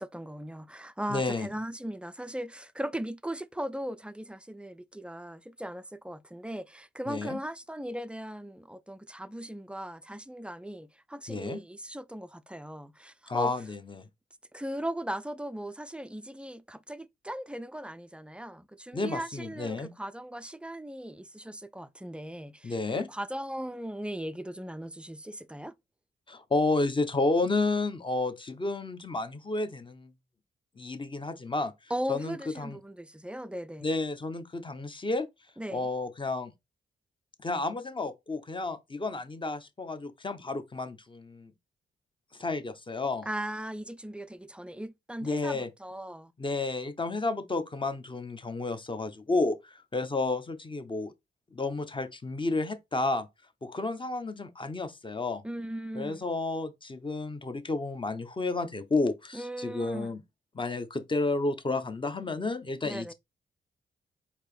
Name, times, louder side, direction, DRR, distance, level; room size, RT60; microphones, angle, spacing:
voice 1, 0.0-13.5 14.5-25.7 31.9-33.9 35.6-35.9 43.3-46.3 55.4-56.2 59.3-60.2 62.8-63.1, right 1 dB, 5° right, 0.4 m, -38 dB
voice 2, 1.1-1.5 7.1-7.4 11.3-11.6 13.3-14.0 18.9-19.9 22.6-23.1 26.3-30.1 30.8-31.7 32.1-32.8 33.8-35.3 35.7-36.5 37.4-41.5 42.4-43.3 45.2-45.7 46.4-51.1 51.5-53.3 53.6-55.4 55.9-60.2 60.5-63.1, left 3 dB, 25° left, 0.8 m, -31 dB
4.4 x 2.8 x 3.3 m
cardioid pair, 70°, 19 cm